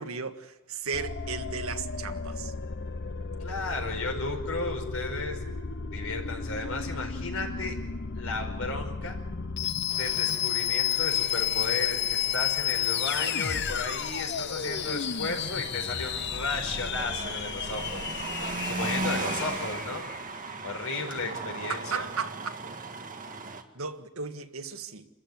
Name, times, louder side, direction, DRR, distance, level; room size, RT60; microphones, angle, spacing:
voice 1, 0.0-2.5 21.7-22.6 23.7-25.1, right 5 dB, 70° right, 1.7 m, -35 dB
sound 1, 0.9-20.3, left 8 dB, 50° left, 0.9 m, -32 dB
voice 2, 3.4-5.4 5.9-7.7 8.1-9.2 9.9-18.4 18.6-20.0 20.6-22.1, left 3 dB, 70° left, 5.1 m, -34 dB
sound 2, 9.9-23.6, right 3 dB, 35° right, 2.0 m, -38 dB
28.0 x 15.0 x 9.4 m
head